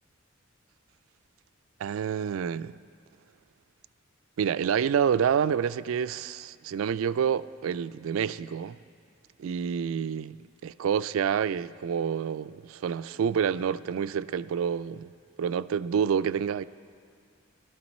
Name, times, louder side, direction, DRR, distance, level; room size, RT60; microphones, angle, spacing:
voice 1, 1.8-2.7 4.4-8.8 9.4-10.4 10.6-15.1 15.4-16.6, right 7 dB, 80° right, 0.3 m, -28 dB
19.5 x 12.5 x 4.2 m
head